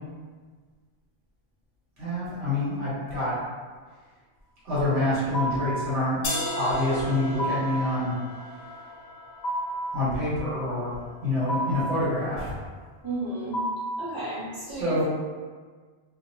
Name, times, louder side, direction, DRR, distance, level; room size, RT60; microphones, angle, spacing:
voice 1, 2.0-3.3 4.6-6.3 6.5-8.1 8.5-8.6 9.9-12.6 14.7-15.0, left 1 dB, 75° right, -10 dB, 1.4 m, -27 dB
sound 1, 5.3-5.8 7.4-7.9 9.4-9.9 11.5-12.0 13.5-14.0, right 1 dB, 55° left, 0.5 m, -30 dB
sound 2, 6.2-12.2, left 2 dB, 70° left, 0.9 m, -37 dB
voice 2, 13.0-13.6 14.0-15.0, right 2 dB, 30° right, -10 dB, 0.8 m, -32 dB
2.7 x 2.1 x 2.7 m, 1.5 s
omnidirectional pair, 1.1 m